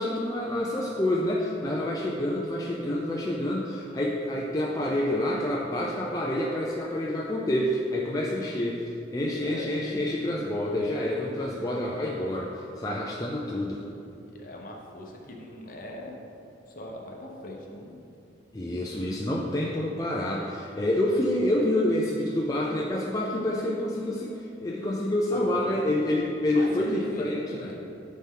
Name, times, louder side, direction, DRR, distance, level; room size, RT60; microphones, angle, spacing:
voice 1, 0.0-8.8 9.1-13.8 18.5-27.7, left 1 dB, 20° left, -3 dB, 0.4 m, -28 dB
voice 2, 9.4-9.8 14.3-16.2 16.7-18.0 25.3-25.8 26.5-27.3 27.6-27.7, left 1 dB, 45° left, -1 dB, 0.9 m, -40 dB
9.3 x 4.2 x 3.8 m, 2.6 s
head